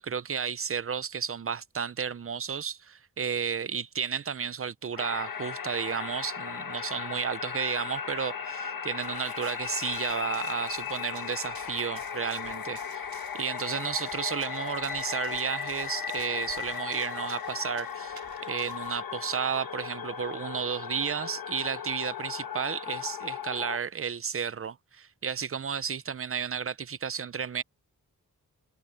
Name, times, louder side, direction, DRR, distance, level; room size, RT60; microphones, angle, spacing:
voice 1, 0.0-13.1 13.3-27.6, right 7 dB, 40° right, 0.6 m, -32 dB
sound 1, 5.0-23.8, left 7 dB, 70° left, 1.4 m, -36 dB
Run, 9.0-19.0, right 6 dB, 80° right, 3.3 m, -53 dB
wide cardioid pair, 110°, 36 cm